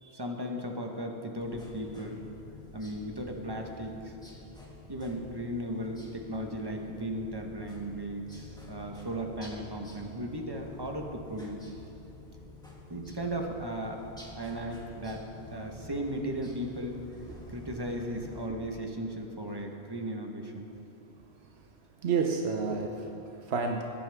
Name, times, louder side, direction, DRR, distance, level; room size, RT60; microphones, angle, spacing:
voice 1, 0.0-2.2 2.7-4.1 4.9-11.6 12.9-14.0 14.3-17.0 17.5-20.7, right 1 dB, 25° right, 2 dB, 1.1 m, -36 dB
sound 1, 1.4-18.5, left 2 dB, 5° left, 1.5 m, -49 dB
voice 2, 22.0-23.8, right 5 dB, 90° right, 3 dB, 1.0 m, -30 dB
18.0 x 10.0 x 3.5 m, 2.9 s
omnidirectional pair, 1.1 m